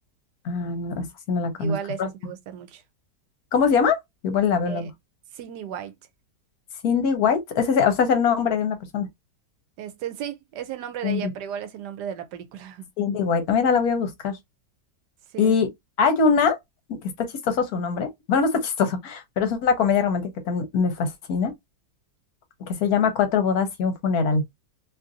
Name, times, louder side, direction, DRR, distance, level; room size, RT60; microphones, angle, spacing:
voice 1, 0.4-2.1 3.5-4.0 4.2-4.9 6.8-9.1 11.0-11.2 13.0-14.4 15.4-15.7 16.0-16.6 16.9-21.5 22.7-24.4, left 5 dB, 65° left, 1.2 m, -22 dB
voice 2, 1.6-2.8 4.7-4.9 5.3-5.9 9.8-12.9 15.3-15.6, right 9 dB, 80° right, 1.2 m, -34 dB
2.9 x 2.5 x 2.5 m
omnidirectional pair, 1.8 m